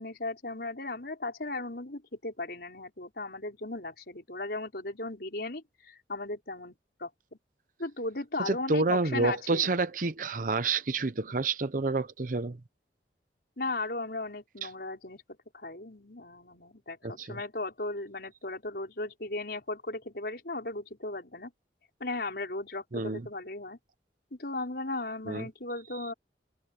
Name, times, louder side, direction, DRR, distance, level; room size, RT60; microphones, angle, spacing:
voice 1, 0.0-7.1 7.8-9.6 13.6-15.2 15.5-21.5 22.0-23.8 24.3-26.1, left 2 dB, 60° left, 5.4 m, -36 dB
voice 2, 8.5-12.6 14.6-14.7 17.0-17.4 22.9-23.3 25.3-25.5, right 3 dB, 50° right, 0.7 m, -29 dB
head